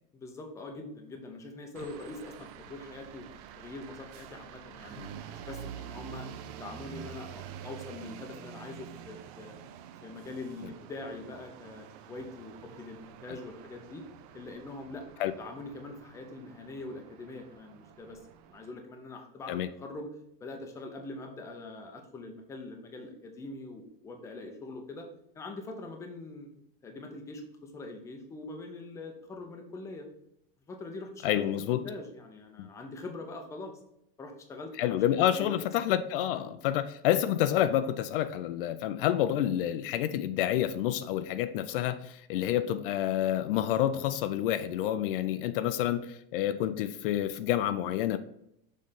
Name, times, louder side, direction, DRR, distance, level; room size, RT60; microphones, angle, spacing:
voice 1, 0.1-3.3 3.6-5.0 5.3-6.3 6.5-9.6 10.0-14.0 14.3-15.0 15.4-18.2 18.5-20.1 20.4-25.1 25.3-30.1 30.7-33.7 34.2-35.0 35.4-35.6 36.3-36.5, left 2 dB, 10° left, 0.6 m, -43 dB
sound 1, 1.8-18.7, right 9 dB, 40° right, 0.5 m, -47 dB
voice 2, 31.2-31.8 32.6-32.7 34.8-48.2, left 11 dB, 65° left, 0.5 m, -28 dB
6.4 x 3.3 x 5.5 m
supercardioid pair, 165°, 29 cm